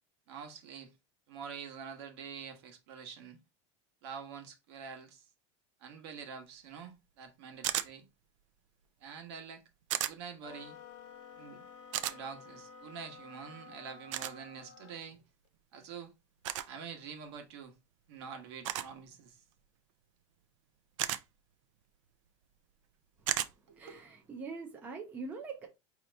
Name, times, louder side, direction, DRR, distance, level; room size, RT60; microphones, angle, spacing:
voice 1, 0.3-0.9 1.3-3.4 4.0-5.3 5.8-8.1 9.0-9.6 10.0-10.8 11.4-11.6 12.1-15.2 15.7-16.1 16.7-17.7 18.1-19.4 23.7-24.0, right 6 dB, 55° right, 1.1 m, -46 dB
sound 1, 7.6-7.9 9.9-10.1 11.9-12.2 14.1-14.3 16.4-16.7 18.6-18.9 21.0-21.2 23.3-23.5, right 12 dB, 75° right, 0.5 m, -33 dB
sound 2, 10.4-15.1, left 5 dB, 80° left, 1.0 m, -52 dB
voice 2, 23.2-25.7, right 4 dB, 10° right, 0.5 m, -44 dB
5.1 x 2.8 x 3.3 m
supercardioid pair, 180°, 16 cm